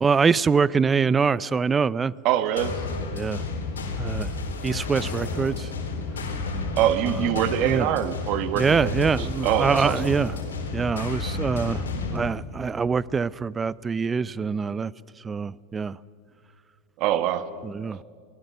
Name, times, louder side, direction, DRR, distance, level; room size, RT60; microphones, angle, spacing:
voice 1, 0.0-2.1 3.1-3.4 4.0-4.3 4.6-5.7 7.6-7.9 8.6-10.3 10.7-14.9 15.2-16.0 17.6-18.0, right 5 dB, 20° right, 0.6 m, -24 dB
voice 2, 2.2-2.8 6.7-10.1 17.0-17.5, right 12 dB, 55° right, 1.4 m, -25 dB
sound 1, 2.6-12.2, left 3 dB, 90° left, 3.6 m, -31 dB
23.5 x 19.5 x 6.8 m
hypercardioid pair, 95°, 0 cm